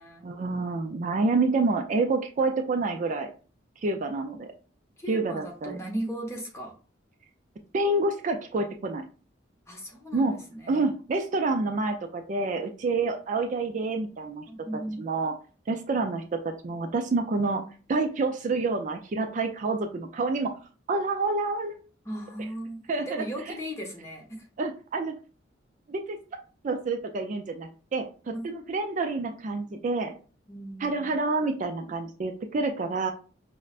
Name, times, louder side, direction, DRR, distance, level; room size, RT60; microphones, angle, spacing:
voice 1, 0.2-3.3 3.8-4.5 5.1-5.8 7.7-9.0 10.1-10.3 10.7-14.4 15.0-15.3 15.7-17.6 17.9-20.5 20.9-21.8 22.9-23.3 24.6-25.1 25.9-26.2 26.6-30.1 30.8-33.1, right 3 dB, 40° right, 5 dB, 0.4 m, -28 dB
voice 2, 5.0-6.7 9.7-10.9 14.5-15.1 22.0-24.5 28.3-28.5 30.5-31.2, right 1 dB, 15° left, -1 dB, 0.9 m, -37 dB
5.3 x 2.1 x 2.4 m, 0.37 s
head